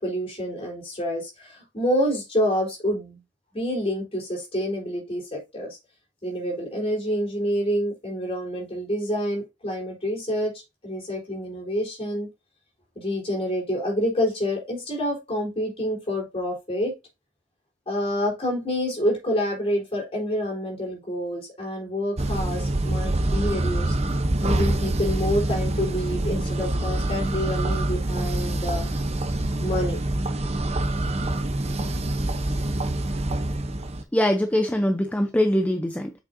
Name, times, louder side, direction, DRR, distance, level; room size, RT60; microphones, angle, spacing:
voice 1, 0.0-3.2 3.5-5.8 6.2-10.5 10.8-12.3 13.0-16.9 17.9-24.0 24.4-28.9 29.6-30.0, equal, 30° left, 4.1 m, -27 dB
sound 1, 22.2-34.0, right 1 dB, 35° right, 0.8 m, -25 dB
voice 2, 34.1-36.1, left 1 dB, 10° left, 0.5 m, -22 dB
7.8 x 6.2 x 2.7 m
head